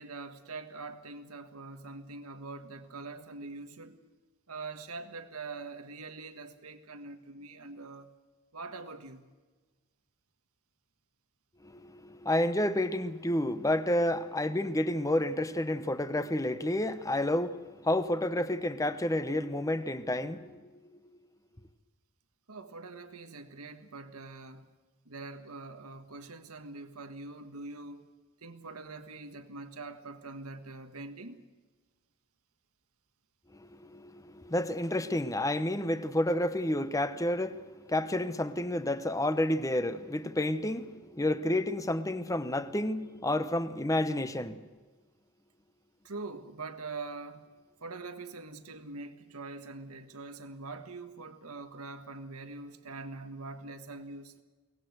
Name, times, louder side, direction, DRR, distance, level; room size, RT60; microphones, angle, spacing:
voice 1, 0.0-4.0 4.5-8.1 8.5-9.3 22.5-24.7 25.0-28.1 28.4-31.4 46.0-47.5 47.8-54.3, right 3 dB, 90° right, 1.6 m, -43 dB
voice 2, 11.6-20.8 33.6-44.6, left 1 dB, 15° left, 0.9 m, -30 dB
23.5 x 19.0 x 8.0 m
head